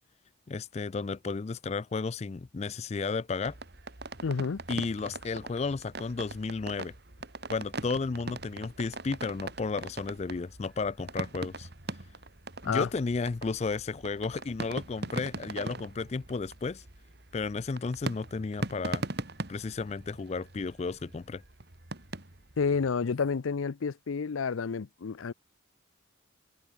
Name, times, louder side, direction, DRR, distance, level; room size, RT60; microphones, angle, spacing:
voice 1, 0.5-3.5 4.7-6.9 7.5-11.7 12.6-16.8 17.3-19.1 19.5-21.4, left 4 dB, 35° left, 0.4 m, -33 dB
sound 1, 3.4-22.9, right 2 dB, 55° right, 2.8 m, -41 dB
voice 2, 4.2-4.6 12.6-12.9 22.6-25.3, left 5 dB, 85° left, 0.5 m, -30 dB
head